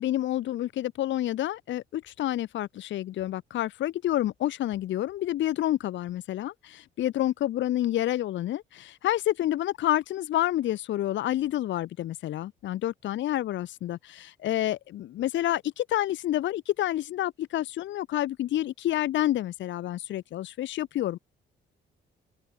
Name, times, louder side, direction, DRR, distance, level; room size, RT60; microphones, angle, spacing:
voice 1, 0.0-21.2, left 13 dB, 70° left, 0.8 m, -29 dB
open air
cardioid pair, 90°, 20 cm